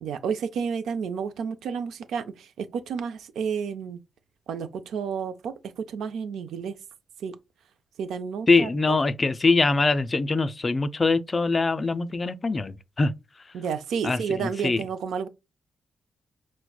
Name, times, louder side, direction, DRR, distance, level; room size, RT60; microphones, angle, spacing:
voice 1, 0.0-4.0 4.5-6.7 7.2-7.4 8.0-9.0 13.5-15.3, right 6 dB, 80° right, 0.3 m, -31 dB
voice 2, 8.5-13.1 14.0-14.8, left 3 dB, 40° left, 0.3 m, -23 dB
4.4 x 2.1 x 2.3 m
supercardioid pair, 50°, 0 cm